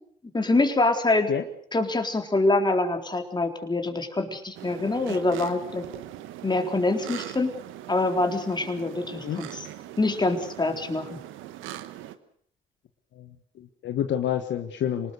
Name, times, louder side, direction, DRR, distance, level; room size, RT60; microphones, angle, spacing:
voice 1, 0.3-1.3 1.7-5.9 6.4-7.5 7.9-9.7 10.0-11.2, left 2 dB, 20° left, 5 dB, 3.9 m, -25 dB
sound 1, 4.5-12.1, right 13 dB, 70° right, 1.3 m, -41 dB
voice 2, 13.6-15.1, left 10 dB, 60° left, 7 dB, 1.5 m, -28 dB
26.5 x 19.5 x 6.6 m, 0.62 s
hypercardioid pair, 55°, 21 cm